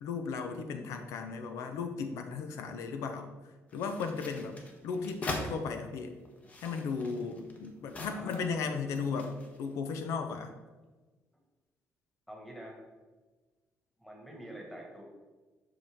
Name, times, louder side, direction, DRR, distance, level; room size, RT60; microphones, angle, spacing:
voice 1, 0.0-3.3 3.7-4.5 4.8-6.1 6.6-10.5, left 5 dB, 90° left, 6 dB, 0.7 m, -36 dB
sound 1, 3.7-5.5 6.3-8.6 9.0-9.6, left 2 dB, 30° left, 1.1 m, -42 dB
voice 2, 8.1-8.6 12.3-12.8 14.0-15.0, right 1 dB, 5° left, -1 dB, 1.6 m, -46 dB
8.1 x 5.5 x 3.5 m, 1.3 s
cardioid pair, 140°, 5 cm